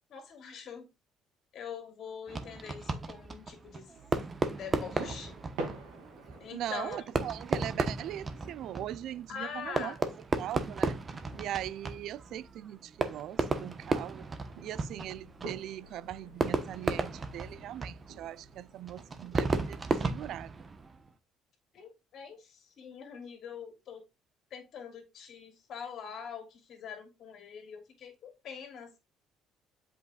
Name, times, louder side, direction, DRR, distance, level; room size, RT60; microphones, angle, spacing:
voice 1, 0.1-0.9 1.5-3.9 4.5-5.4 6.4-7.1 9.3-10.0 21.7-24.0 24.5-29.0, left 7 dB, 55° left, 2.8 m, -44 dB
Fireworks, 2.3-21.1, right 3 dB, 30° right, 1.0 m, -35 dB
sound 1, 3.9-19.8, right 3 dB, 90° right, 2.3 m, -49 dB
voice 2, 6.5-10.0 10.4-11.0 11.4-14.3 14.6-20.7, right 12 dB, 65° right, 0.4 m, -40 dB
7.9 x 5.2 x 2.4 m
cardioid pair, 105°, 0 cm